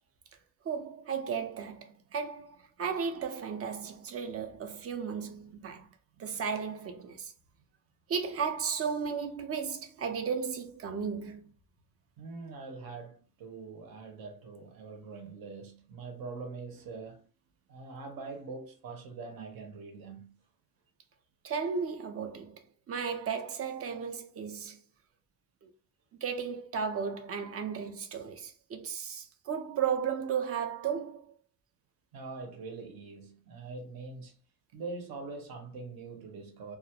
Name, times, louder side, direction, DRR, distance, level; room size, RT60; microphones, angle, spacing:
voice 1, 0.7-5.9 6.2-7.3 8.1-11.4 21.4-22.6 22.9-24.8 25.6-25.7 26.2-31.2, right 6 dB, 40° right, 0.5 m, -34 dB
voice 2, 12.2-17.3 17.7-20.4 32.1-34.3 34.7-36.8, right 4 dB, 70° right, 0.8 m, -43 dB
2.3 x 2.0 x 2.8 m
cardioid pair, 105°, 37 cm